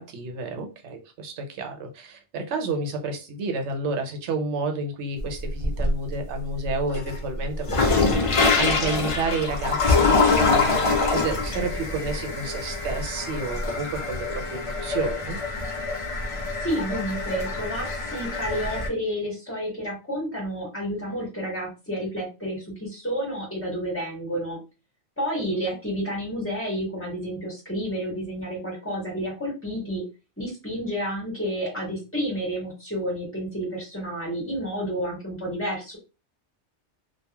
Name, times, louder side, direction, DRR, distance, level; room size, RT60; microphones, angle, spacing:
voice 1, 0.0-15.4, right 3 dB, 70° right, 4 dB, 0.9 m, -30 dB
sound 1, 5.2-6.1 6.6-18.9, left 3 dB, 50° left, 0.4 m, -24 dB
voice 2, 16.6-24.6 25.2-30.0 30.4-36.0, equal, 10° left, -3 dB, 1.3 m, -30 dB
2.9 x 2.4 x 2.2 m, 0.31 s
omnidirectional pair, 1.2 m